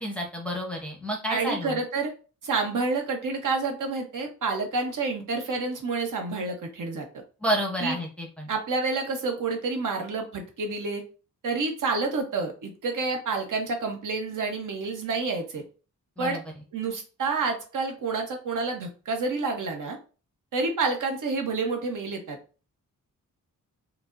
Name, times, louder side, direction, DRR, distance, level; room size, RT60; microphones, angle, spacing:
voice 1, 0.0-1.8 7.4-8.5 16.2-16.4, equal, 5° left, 0 dB, 0.7 m, -30 dB
voice 2, 1.3-2.1 2.4-7.0 7.8-8.0 8.5-11.0 11.4-15.6 16.2-16.4 16.7-20.0 20.5-22.4, right 3 dB, 70° right, 3 dB, 0.9 m, -29 dB
4.8 x 2.0 x 2.5 m, 0.35 s
wide cardioid pair, 150°, 33 cm